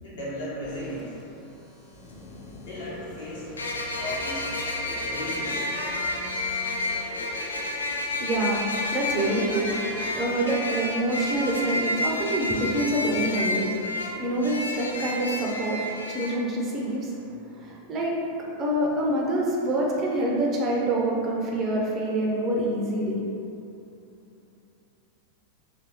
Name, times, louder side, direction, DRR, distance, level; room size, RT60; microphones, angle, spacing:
voice 1, 0.0-1.2 2.6-3.5 4.0-4.6 5.0-5.6, left 1 dB, 60° left, -7 dB, 0.9 m, -36 dB
sound 1, 0.6-10.1, left 1 dB, 20° left, 0.7 m, -44 dB
sound 2, 1.9-2.0 3.6-16.4, left 2 dB, 75° left, 0.3 m, -30 dB
voice 2, 8.1-13.8 14.0-23.2, right 1 dB, 30° right, -3 dB, 0.5 m, -26 dB
2.9 x 2.6 x 3.0 m, 2.7 s
figure-of-eight pair, 90°, 0 cm